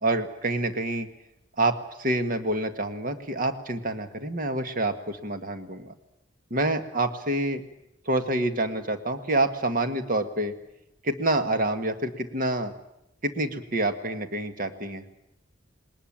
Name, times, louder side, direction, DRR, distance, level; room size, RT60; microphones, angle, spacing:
voice 1, 0.0-1.1 1.6-5.9 6.5-7.6 8.0-10.5 11.0-12.7 13.2-15.0, right 2 dB, 50° right, 8 dB, 1.7 m, -27 dB
21.0 x 19.5 x 8.7 m, 0.83 s
head